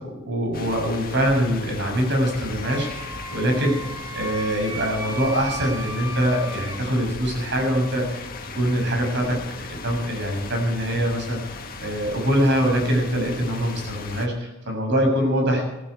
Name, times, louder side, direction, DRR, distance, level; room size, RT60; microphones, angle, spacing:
voice 1, 0.0-3.8 4.1-8.3 8.5-9.4 9.7-15.6, equal, 55° right, 2 dB, 7.0 m, -23 dB
sound 1, 0.5-14.3, left 4 dB, 45° left, 1.8 m, -37 dB
Wind instrument woodwind instrument, 2.6-6.8, right 1 dB, 20° right, 2.0 m, -36 dB
19.5 x 14.5 x 4.7 m, 0.98 s
head